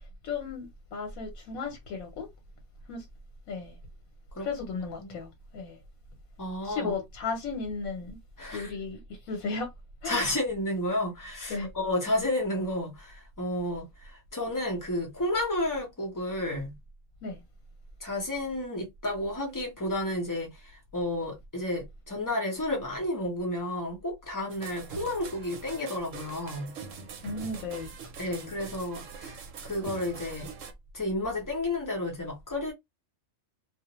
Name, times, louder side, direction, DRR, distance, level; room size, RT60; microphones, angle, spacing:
voice 1, 0.2-2.3 2.9-3.1 3.5-3.8 4.4-5.8 6.6-8.2 8.5-9.0 9.3-9.7 10.0-10.2 11.5-11.7 17.2-17.4 27.2-27.9 28.2-28.5, left 4 dB, 80° left, 1.1 m, -35 dB
voice 2, 6.4-6.9 8.4-8.7 10.0-16.8 18.0-20.5 20.9-26.8 28.2-30.5 30.9-32.7, left 1 dB, 25° left, 0.5 m, -31 dB
sound 1, 24.5-30.7, right 5 dB, 70° right, 0.9 m, -43 dB
2.4 x 2.0 x 2.9 m
omnidirectional pair, 1.4 m